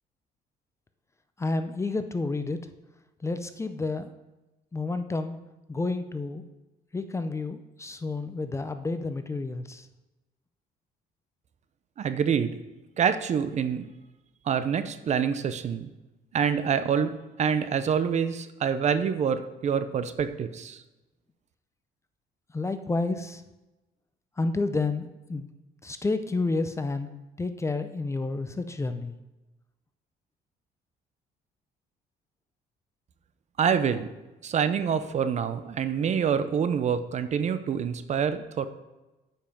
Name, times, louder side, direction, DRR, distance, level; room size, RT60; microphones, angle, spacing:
voice 1, 1.4-2.6 3.2-4.2 4.7-5.4 5.7-6.4 6.9-9.9 22.5-23.4 24.4-25.5 25.8-27.1 27.4-29.2, left 3 dB, 15° left, 9 dB, 0.5 m, -30 dB
voice 2, 12.0-12.5 13.0-13.9 14.5-15.9 16.3-20.8 33.6-34.1 34.4-38.7, right 7 dB, 45° right, 11 dB, 0.6 m, -26 dB
8.7 x 5.4 x 5.3 m, 1.1 s
cardioid pair, 110°, 17 cm